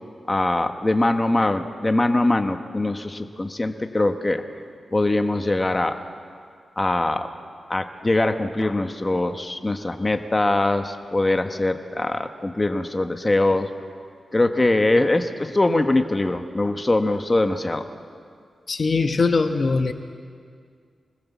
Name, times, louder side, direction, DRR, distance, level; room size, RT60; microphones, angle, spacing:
voice 1, 0.3-4.4 4.9-6.0 6.8-7.3 7.7-13.7 14.3-17.9, left 2 dB, 25° left, 7 dB, 1.3 m, -22 dB
voice 2, 18.7-19.9, left 4 dB, 50° left, 7 dB, 1.2 m, -21 dB
25.0 x 20.5 x 7.3 m, 2.2 s
cardioid pair, 85°, 0 cm